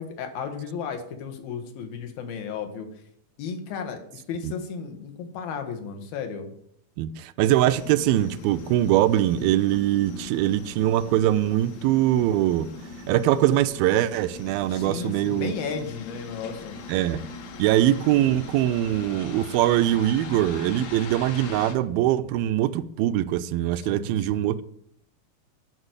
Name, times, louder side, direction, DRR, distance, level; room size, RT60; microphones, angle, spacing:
voice 1, 0.0-2.9 3.4-6.5 14.7-16.8 23.8-24.5, left 6 dB, 75° left, 3.2 m, -34 dB
voice 2, 7.0-12.7 13.1-15.5 16.9-17.2 17.6-24.6, right 13 dB, 85° right, 2.3 m, -22 dB
sound 1, 7.6-21.8, left 4 dB, 60° left, 2.1 m, -41 dB
11.0 x 6.0 x 8.0 m
omnidirectional pair, 4.3 m